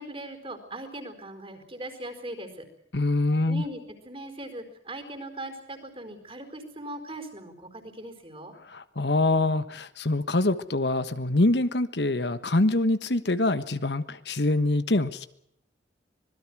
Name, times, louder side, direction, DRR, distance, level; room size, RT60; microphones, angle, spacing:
voice 1, 0.0-2.6 3.5-8.5, right 1 dB, 30° right, 8 dB, 4.6 m, -40 dB
voice 2, 2.9-3.6 8.7-15.3, left 2 dB, 75° left, 12 dB, 1.4 m, -25 dB
25.5 x 21.0 x 6.2 m, 0.71 s
head